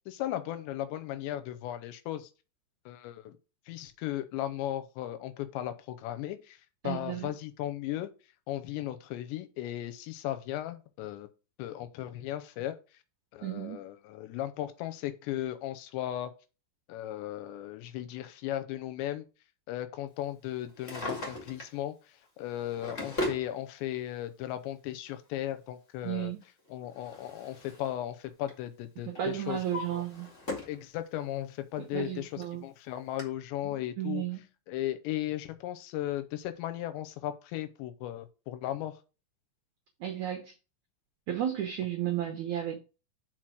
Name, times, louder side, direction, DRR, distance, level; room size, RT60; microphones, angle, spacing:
voice 1, 0.1-2.3 2.9-3.4 3.7-6.6 6.8-8.1 8.5-11.3 11.6-12.8 13.3-16.3 16.9-19.2 19.7-22.0 22.4-26.3 26.7-29.6 29.9-30.0 30.7-34.2 34.7-39.0, left 13 dB, 90° left, 3.0 m, -36 dB
voice 2, 6.8-7.3 13.4-13.8 26.0-26.4 29.1-30.3 31.8-32.6 33.6-34.4 40.0-40.5 41.3-42.8, right 11 dB, 80° right, 1.7 m, -33 dB
Drawer open or close, 20.6-21.8 22.5-23.5 24.6-24.7 26.4-28.0 28.3-28.6 29.1-30.8 31.2-31.3 32.1-32.2 32.4-32.5 33.2-33.3, left 1 dB, 40° left, 1.0 m, -38 dB
6.0 x 4.8 x 6.3 m
omnidirectional pair, 5.1 m